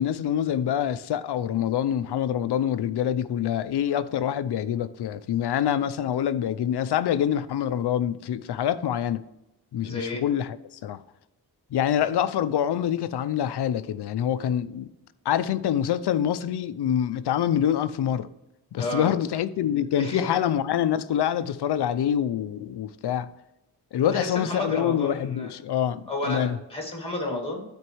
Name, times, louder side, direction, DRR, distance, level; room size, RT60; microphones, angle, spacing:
voice 1, 0.0-9.2 9.7-11.0 11.7-14.9 15.3-18.3 18.7-23.3 23.9-26.6, left 10 dB, 80° left, 0.6 m, -26 dB
voice 2, 9.8-10.2 18.8-19.1 20.0-20.3 24.0-25.5 26.1-27.6, left 2 dB, 15° left, 2.3 m, -31 dB
12.5 x 4.5 x 3.1 m
wide cardioid pair, 110°, 40 cm